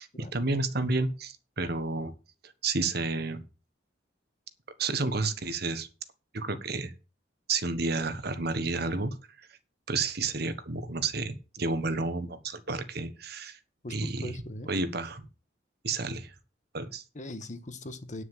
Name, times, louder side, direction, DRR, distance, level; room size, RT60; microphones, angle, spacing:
voice 1, 0.0-2.1 2.4-3.4 4.8-5.9 6.3-6.9 7.5-9.2 9.9-13.6 13.9-14.4 14.7-15.3 15.8-16.3 16.7-17.0, right 3 dB, 60° right, 11 dB, 1.3 m, -31 dB
voice 2, 13.8-14.7 17.1-18.2, left 1 dB, 40° left, 10 dB, 1.4 m, -40 dB
9.8 x 6.5 x 7.2 m, 0.32 s
head